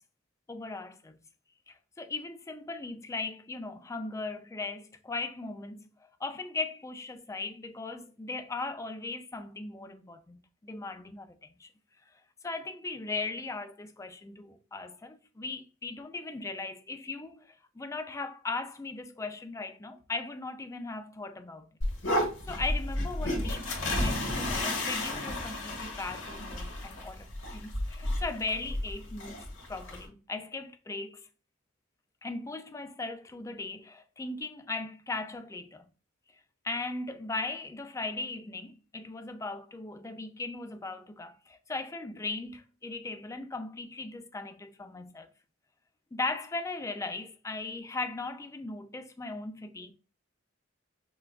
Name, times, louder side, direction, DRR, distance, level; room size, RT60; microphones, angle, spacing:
voice 1, 0.5-1.2 1.7-5.9 6.2-11.7 12.4-21.7 22.2-29.4 29.7-31.2 32.2-35.8 36.6-45.3 46.1-49.9, left 3 dB, 15° left, 0.3 m, -38 dB
sound 1, 21.8-30.1, left 1 dB, 75° left, 1.6 m, -32 dB
5.8 x 2.3 x 2.4 m
head